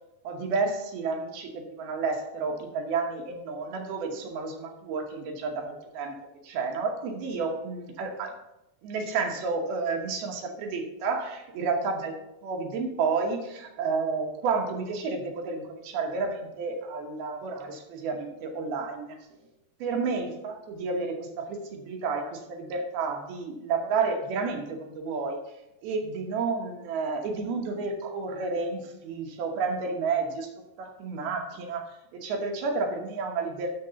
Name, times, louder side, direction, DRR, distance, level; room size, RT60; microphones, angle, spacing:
voice 1, 0.2-6.2 6.4-8.3 8.8-12.2 12.4-19.1 19.8-25.4 25.8-30.5 30.8-33.7, right 4 dB, 70° right, 3 dB, 3.0 m, -31 dB
12.5 x 4.6 x 6.8 m, 0.91 s
omnidirectional pair, 4.7 m